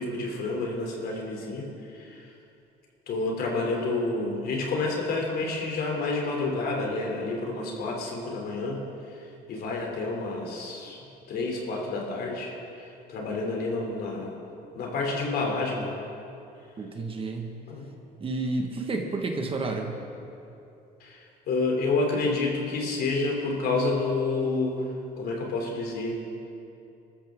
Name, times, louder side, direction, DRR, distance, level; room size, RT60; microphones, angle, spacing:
voice 1, 0.0-2.3 3.1-14.3 14.7-15.9 17.7-17.9 21.0-26.2, left 3 dB, 65° left, 0 dB, 3.4 m, -29 dB
voice 2, 16.8-17.6 18.2-20.0, right 3 dB, 35° right, 3 dB, 1.8 m, -30 dB
22.5 x 13.5 x 3.9 m, 2.7 s
cardioid pair, 110°, 17 cm